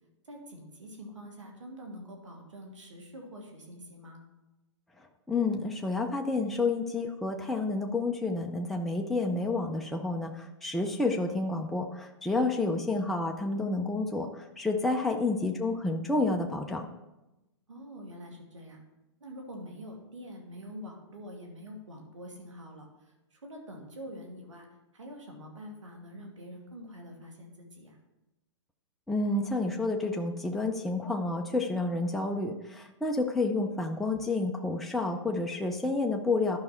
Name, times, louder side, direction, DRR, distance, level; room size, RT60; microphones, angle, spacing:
voice 1, 0.2-4.2 12.6-12.8 15.0-15.3 17.7-18.8 19.2-24.7 24.9-28.0, equal, 90° right, 2 dB, 2.6 m, -45 dB
voice 2, 5.3-16.9 29.1-36.6, left 3 dB, ahead, 2 dB, 0.6 m, -30 dB
12.0 x 5.4 x 4.4 m, 0.99 s
hypercardioid pair, 130°, 15 cm